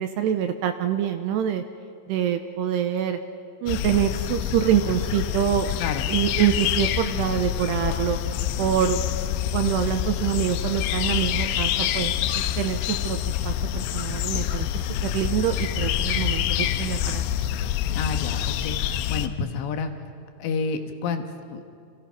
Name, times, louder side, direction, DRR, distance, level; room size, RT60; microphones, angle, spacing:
voice 1, 0.0-1.6 2.1-3.2 3.6-5.7 6.1-8.2 8.6-9.0 9.5-12.1 12.6-14.7 15.0-17.5, right 10 dB, 80° right, 8 dB, 2.6 m, -25 dB
sound 1, 3.7-19.3, left 11 dB, 90° left, 3.3 m, -26 dB
voice 2, 17.9-18.8 19.1-19.9 20.4-21.6, left 5 dB, 70° left, 6 dB, 3.4 m, -29 dB
30.0 x 27.5 x 5.8 m, 2.3 s
omnidirectional pair, 5.5 m